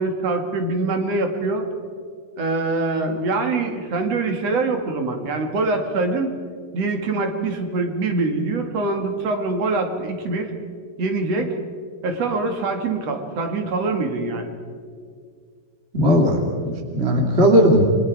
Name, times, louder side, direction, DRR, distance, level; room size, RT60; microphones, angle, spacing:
voice 1, 0.0-1.7 2.4-6.4 6.7-10.5 11.0-11.5 12.0-14.5, right 3 dB, 50° right, 5 dB, 2.9 m, -24 dB
voice 2, 15.9-17.8, equal, 20° right, 1 dB, 2.1 m, -17 dB
29.5 x 25.0 x 4.8 m, 2.1 s
omnidirectional pair, 4.0 m